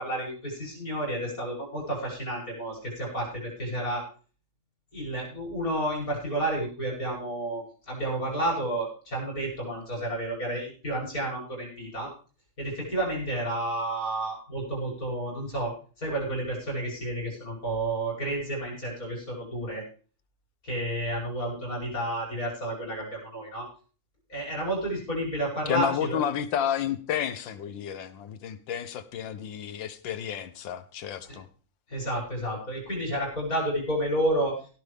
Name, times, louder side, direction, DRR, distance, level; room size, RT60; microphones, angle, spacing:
voice 1, 0.0-4.0 4.9-12.1 12.6-19.8 20.6-23.7 24.3-26.2 31.3-31.4 31.9-34.6, right 1 dB, 45° left, -2 dB, 8.0 m, -31 dB
voice 2, 25.7-31.5, left 9 dB, 80° left, 12 dB, 1.7 m, -31 dB
17.0 x 12.0 x 3.6 m, 0.39 s
omnidirectional pair, 2.0 m